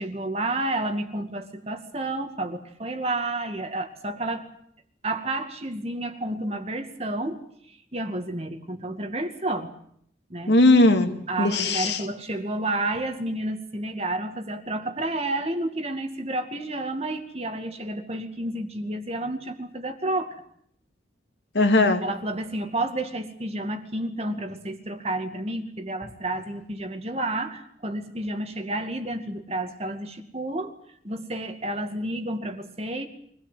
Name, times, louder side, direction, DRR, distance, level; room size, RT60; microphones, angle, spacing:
voice 1, 0.0-4.5 5.0-7.4 7.9-9.7 10.3-10.5 11.3-20.4 22.0-30.7 31.0-33.1, right 2 dB, 35° right, 6 dB, 2.3 m, -30 dB
voice 2, 10.5-12.0 21.5-22.0, left 2 dB, 70° left, 6 dB, 2.6 m, -19 dB
24.5 x 17.0 x 9.2 m, 0.67 s
head